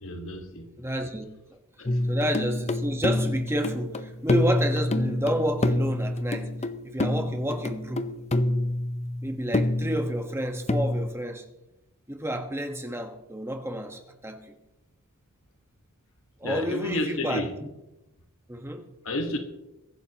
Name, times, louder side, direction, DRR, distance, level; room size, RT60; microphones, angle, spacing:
voice 1, 0.0-0.7 1.8-1.9 16.4-17.5 19.0-19.4, left 1 dB, 65° left, 1.5 m, -30 dB
voice 2, 0.8-1.3 1.5-1.6 2.1-6.5 6.8-8.1 9.2-11.4 12.1-14.6 16.4-17.7 18.5-18.9, equal, 10° right, 1.3 m, -30 dB
sound 1, 1.9-11.1, left 1 dB, 30° left, 0.7 m, -27 dB
22.5 x 11.5 x 3.0 m
head